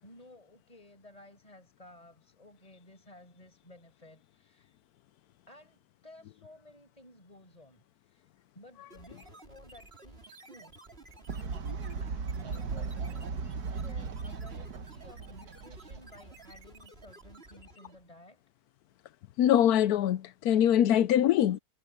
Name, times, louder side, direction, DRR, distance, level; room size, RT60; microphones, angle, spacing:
voice 1, 0.0-4.8 5.5-8.2 8.5-10.8 12.0-18.4, left 1 dB, 25° left, 6.7 m, -55 dB
sound 1, 8.9-18.1, right 2 dB, 40° right, 3.8 m, -53 dB
Fowl, 11.3-16.6, right 5 dB, 85° right, 1.9 m, -37 dB
voice 2, 19.4-21.6, left 10 dB, 80° left, 1.2 m, -23 dB
omnidirectional pair, 1.6 m